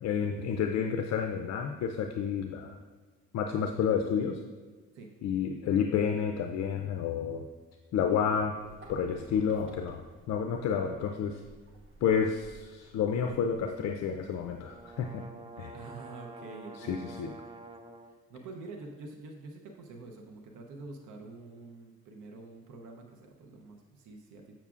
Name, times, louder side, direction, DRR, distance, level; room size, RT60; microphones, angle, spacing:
voice 1, 0.0-2.8 3.3-4.4 5.2-7.5 7.9-8.6 8.9-11.4 12.0-15.3 15.6-15.8 16.8-17.3, left 7 dB, 60° left, 5 dB, 0.5 m, -30 dB
sound 1, 8.6-15.2, right 1 dB, 40° right, 1.3 m, -55 dB
sound 2, 14.3-18.2, right 3 dB, 20° right, 0.4 m, -48 dB
voice 2, 15.7-17.3 18.3-24.6, right 3 dB, 85° right, 2 dB, 0.8 m, -47 dB
7.3 x 7.0 x 2.4 m, 1.4 s
cardioid pair, 90°, 30 cm